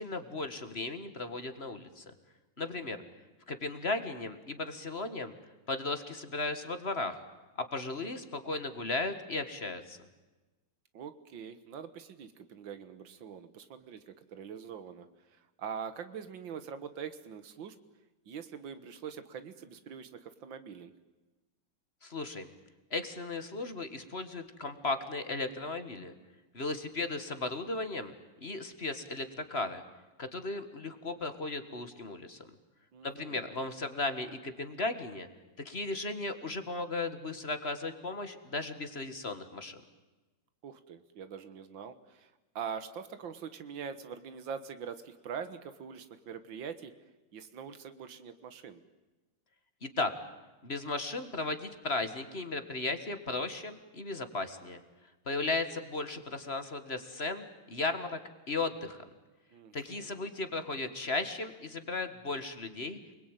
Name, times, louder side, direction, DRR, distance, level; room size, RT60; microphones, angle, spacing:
voice 1, 0.0-2.0 2.6-3.0 3.5-5.3 5.7-7.2 7.6-10.0 22.0-22.5 22.9-26.1 26.5-28.1 28.4-29.8 30.2-32.5 33.0-35.3 35.7-39.8 49.8-50.1 50.6-54.8 55.3-58.2 58.5-59.0 59.7-63.0, left 3 dB, 35° left, 9 dB, 1.9 m, -36 dB
voice 2, 2.6-3.1 10.9-17.8 18.3-20.9 32.9-33.5 40.6-46.9 47.3-48.8 59.5-60.3, right 7 dB, 90° right, 11 dB, 2.1 m, -44 dB
28.5 x 21.0 x 9.1 m, 1.1 s
omnidirectional pair, 2.0 m